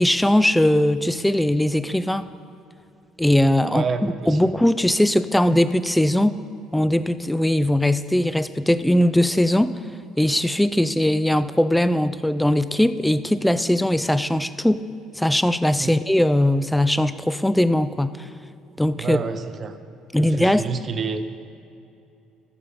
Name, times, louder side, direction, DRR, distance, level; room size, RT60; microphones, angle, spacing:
voice 1, 0.0-2.3 3.2-6.4 6.7-9.8 10.2-14.8 15.2-18.2 18.8-19.2 20.1-20.7, left 1 dB, 5° left, 13 dB, 0.4 m, -20 dB
voice 2, 3.7-4.4 15.8-15.9 19.0-19.7 20.2-21.2, right 5 dB, 40° right, 10 dB, 0.7 m, -28 dB
14.0 x 6.6 x 5.5 m, 2.7 s
cardioid pair, 100°, 0 cm